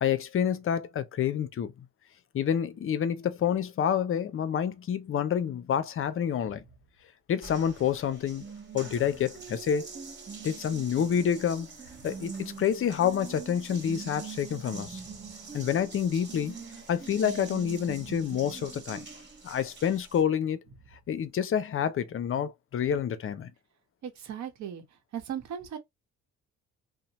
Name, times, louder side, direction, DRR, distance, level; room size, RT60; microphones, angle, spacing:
voice 1, 0.0-1.7 2.3-6.6 7.3-8.4 8.7-9.9 10.4-11.7 12.0-15.0 15.5-16.6 16.9-19.1 19.4-20.6 21.1-23.5, left 8 dB, 45° left, 0.5 m, -28 dB
Water tap faucet, 7.4-20.2, right 5 dB, 35° right, 1.2 m, -43 dB
voice 2, 24.0-24.8 25.1-25.8, right 9 dB, 70° right, 0.9 m, -37 dB
2.7 x 2.1 x 2.9 m
cardioid pair, 90°, 30 cm